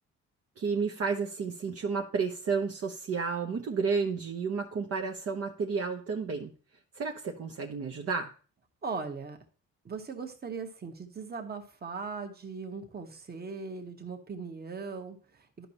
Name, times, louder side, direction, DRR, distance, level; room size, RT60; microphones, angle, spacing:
voice 1, 0.6-6.5 6.9-8.3, right 5 dB, 50° right, 1 dB, 0.9 m, -31 dB
voice 2, 8.8-9.4 9.8-15.7, right 4 dB, 30° right, 5 dB, 1.3 m, -39 dB
11.5 x 5.4 x 2.9 m, 0.39 s
cardioid pair, 90°, 30 cm